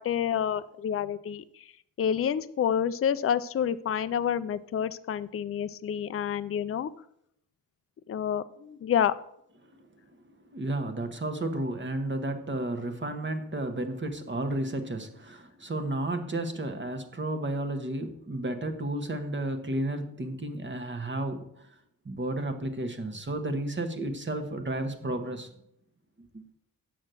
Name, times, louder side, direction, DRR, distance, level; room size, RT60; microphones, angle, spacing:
voice 1, 0.0-1.4 2.0-6.9 8.1-9.1, left 8 dB, 40° left, 14 dB, 0.4 m, -28 dB
voice 2, 10.5-21.7 22.0-25.5 26.2-26.4, right 1 dB, 30° right, 6 dB, 1.2 m, -32 dB
7.7 x 6.3 x 6.7 m, 0.74 s
wide cardioid pair, 110°, 38 cm